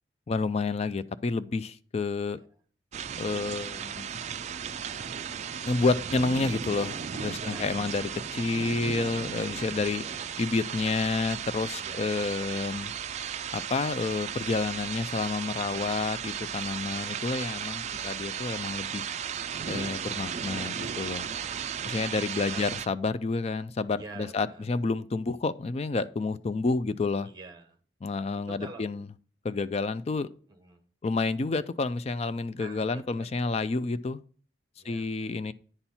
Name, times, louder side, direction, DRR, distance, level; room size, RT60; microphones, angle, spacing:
voice 1, 0.3-2.4 3.2-4.2 5.7-10.1 10.4-12.9 13.5-19.0 19.7-21.3 21.9-27.3 28.0-29.1 29.4-30.3 31.0-34.2 34.8-35.5, left 3 dB, 35° left, 0.4 m, -29 dB
sound 1, 2.9-22.9, right 8 dB, 40° right, 0.3 m, -35 dB
voice 2, 7.3-7.8 10.0-10.5 11.7-12.3 15.6-16.1 17.9-18.3 21.4-21.8 22.5-22.7 23.9-24.6 27.2-27.8 28.3-28.9 30.5-30.8 32.6-33.7 34.8-35.4, right 3 dB, 25° right, 1.2 m, -47 dB
9.9 x 4.4 x 5.6 m
head